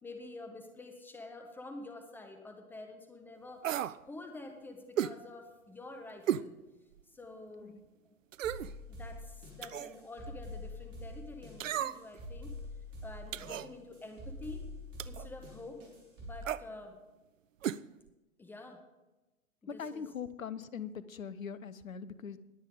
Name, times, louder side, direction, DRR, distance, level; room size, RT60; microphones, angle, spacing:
voice 1, 0.0-3.7 4.0-6.6 7.1-7.8 8.1-8.2 8.9-12.5 13.0-14.6 15.1-15.9 16.2-17.0 18.4-18.8 19.7-20.1, left 2 dB, 5° left, 4 dB, 0.6 m, -48 dB
sound 1, 3.6-4.0 5.0-5.2 6.3-6.5 7.0-7.1 8.3-8.7 9.6-10.0 11.6-12.2 13.3-13.7 15.0-15.3 16.4-16.6 17.6-17.8 18.1-18.2, right 10 dB, 65° right, 0.5 m, -34 dB
sound 2, 8.4-16.4, left 2 dB, 25° right, 4.5 m, -46 dB
voice 2, 19.7-22.4, left 7 dB, 70° left, 17 dB, 0.8 m, -41 dB
21.0 x 8.3 x 3.7 m, 1.1 s
figure-of-eight pair, 110°, 43 cm